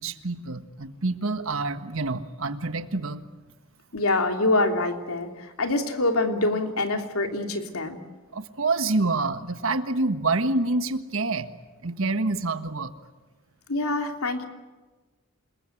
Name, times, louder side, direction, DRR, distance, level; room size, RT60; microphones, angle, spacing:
voice 1, 0.0-3.2 8.3-11.5 11.8-12.9, right 3 dB, 65° right, 10 dB, 1.5 m, -27 dB
voice 2, 3.9-8.0 13.7-14.5, left 2 dB, 80° left, 4 dB, 2.9 m, -25 dB
28.5 x 21.0 x 9.2 m, 1.3 s
head